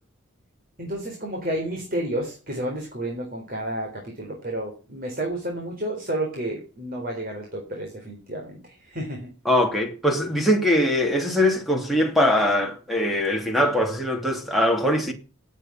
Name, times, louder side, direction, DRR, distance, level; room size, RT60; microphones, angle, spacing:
voice 1, 0.8-9.3, right 1 dB, 40° right, 4.2 m, -31 dB
voice 2, 9.4-15.1, left 1 dB, ahead, 2.8 m, -22 dB
18.5 x 8.8 x 5.9 m
head